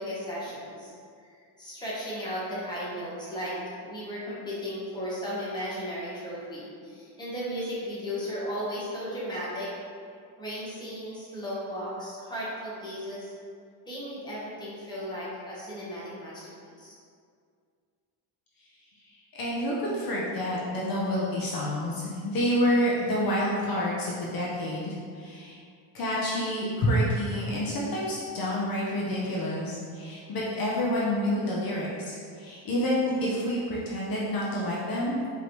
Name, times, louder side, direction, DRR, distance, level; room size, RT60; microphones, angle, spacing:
voice 1, 0.0-3.5 3.8-9.7 10.4-13.3 13.8-16.5 16.8-16.9, equal, 10° left, -8 dB, 1.0 m, -35 dB
voice 2, 19.1-25.6 25.9-35.2, equal, 50° left, -5 dB, 0.7 m, -28 dB
5.0 x 3.0 x 3.0 m, 2.2 s
cardioid pair, 165°, 45 cm